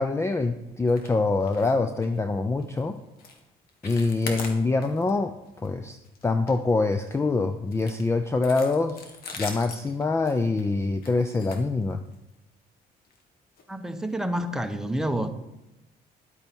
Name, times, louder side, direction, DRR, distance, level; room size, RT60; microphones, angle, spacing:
voice 1, 0.0-2.9 3.8-5.3 5.6-6.0 6.2-12.0, left 3 dB, 15° left, 9 dB, 0.6 m, -25 dB
sound 1, 0.9-1.1 1.4-1.7 2.0-2.2 2.6-2.8 3.2-3.4 3.7-5.1 5.5-5.7 6.0-7.2 7.7-12.3 13.0-13.2 13.6-13.7 14.1-14.2, left 4 dB, 65° left, 1.9 m, -41 dB
voice 2, 13.7-15.3, right 1 dB, 5° right, 6 dB, 1.0 m, -28 dB
11.0 x 8.5 x 4.6 m, 0.94 s
cardioid pair, 110°, 17 cm